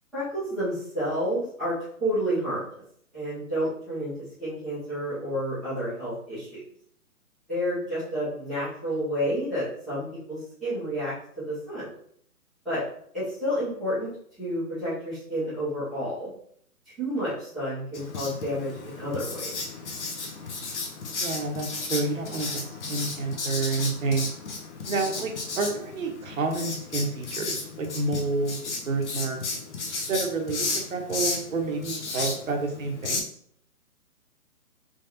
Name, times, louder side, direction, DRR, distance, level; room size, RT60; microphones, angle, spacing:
voice 1, 0.1-2.6 3.1-4.1 4.4-6.6 7.5-11.8 12.6-12.8 13.1-14.1 14.4-16.3 16.8-19.5 24.9-25.2, equal, ahead, -19 dB, 0.5 m, -30 dB
Writing, 17.9-33.2, left 3 dB, 50° left, 1.0 m, -34 dB
voice 2, 21.2-24.3 24.9-29.4 30.1-33.2, right 3 dB, 65° right, 3 dB, 1.0 m, -29 dB
3.9 x 3.4 x 2.7 m, 0.64 s
figure-of-eight pair, 140°, 44 cm